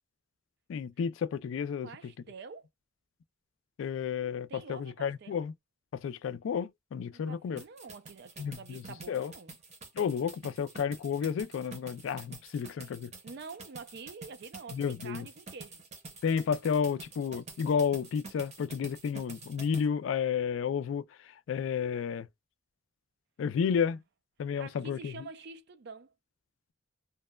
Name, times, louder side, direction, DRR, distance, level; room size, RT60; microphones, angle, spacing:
voice 1, 0.7-1.9 3.8-5.5 5.9-7.6 8.4-8.8 9.1-9.3 10.0-13.1 14.7-15.2 16.2-21.0 21.5-22.3 23.4-24.0 24.4-25.1, left 7 dB, 75° left, 0.3 m, -31 dB
voice 2, 1.8-2.7 4.5-5.4 7.1-9.5 13.2-15.8 23.7-24.0 24.6-26.1, right 4 dB, 60° right, 0.4 m, -47 dB
sound 1, 7.6-19.9, right 3 dB, 35° right, 0.8 m, -48 dB
2.9 x 2.1 x 2.2 m
head